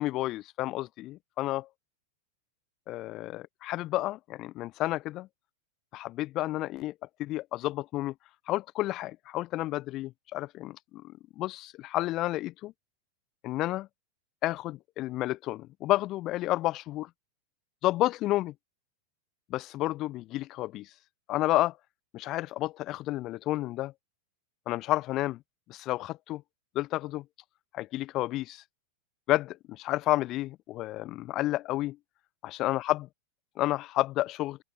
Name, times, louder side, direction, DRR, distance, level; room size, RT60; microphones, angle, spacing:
voice 1, 0.0-1.7 2.9-5.3 5.9-6.9 7.2-8.1 8.5-12.7 13.4-13.9 14.4-17.1 17.8-18.5 19.5-20.9 21.3-21.8 22.1-23.9 24.7-25.4 25.7-26.4 26.7-27.2 27.7-28.6 29.3-32.0 32.4-33.1 33.6-34.6, left 16 dB, 35° left, 0.3 m, -31 dB
open air
figure-of-eight pair, 90°, 0 cm